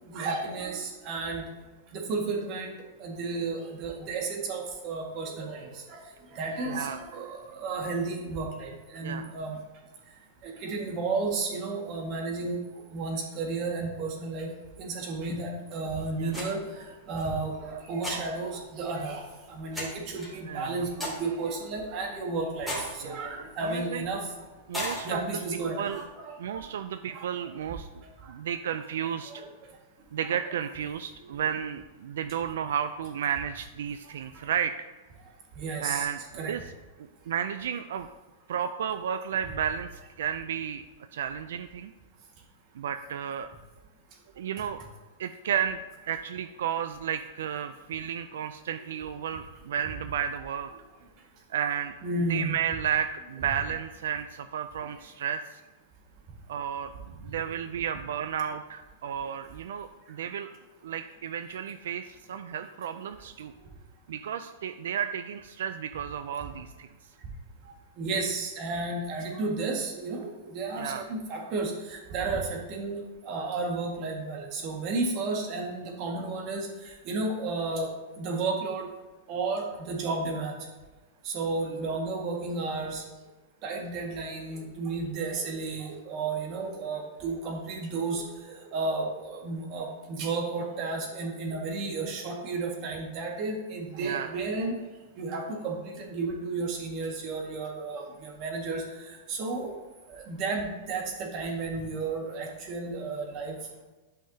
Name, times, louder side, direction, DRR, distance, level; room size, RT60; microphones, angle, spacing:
voice 1, 0.1-1.4 1.9-2.7 3.0-6.0 6.3-9.6 10.4-12.6 12.9-14.5 14.8-19.2 19.5-22.7 23.0-24.2 25.0-26.6 27.1-27.3 28.8-28.9 29.3-29.4 35.6-36.1 36.3-36.5 52.0-52.5 68.0-73.0 73.2-76.7 77.1-77.9 78.2-78.9 79.3-80.5 81.3-83.0 83.6-88.2 88.5-94.7 95.2-98.8 99.3-99.7 100.3-103.6, right 3 dB, 40° right, 0 dB, 1.7 m, -32 dB
voice 2, 6.6-7.0 9.0-9.3 16.2-16.4 20.5-20.9 23.0-23.2 23.6-24.0 24.7-25.2 25.8-26.0 26.4-29.4 30.1-34.9 35.8-36.6 37.3-38.1 38.5-39.9 40.2-40.8 41.1-41.9 42.8-43.5 44.4-44.8 45.2-45.8 46.1-50.7 51.5-52.0 52.3-55.6 56.5-56.9 57.2-60.5 60.8-63.5 64.1-66.9 70.8-71.0 94.0-94.4, right 8 dB, 80° right, 10 dB, 0.4 m, -32 dB
sound 1, 16.3-26.0, equal, ahead, 2.8 m, -41 dB
11.5 x 5.6 x 2.8 m, 1.2 s
supercardioid pair, 150°, 0 cm